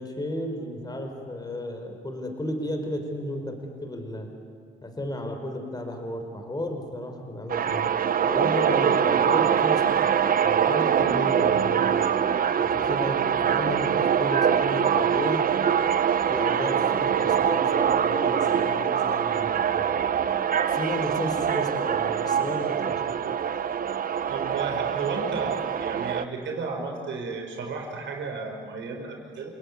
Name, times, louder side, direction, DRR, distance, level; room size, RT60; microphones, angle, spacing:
voice 1, 0.0-4.3 4.8-7.9 8.3-12.0 12.6-15.4 16.3-19.9 20.7-23.0, left 1 dB, 20° left, 4 dB, 4.5 m, -33 dB
sound 1, 7.5-26.2, right 8 dB, 45° right, 1.0 m, -24 dB
voice 2, 24.3-29.5, right 4 dB, 70° right, 2 dB, 5.1 m, -33 dB
29.5 x 17.5 x 9.7 m, 2.1 s
cardioid pair, 90°, 20 cm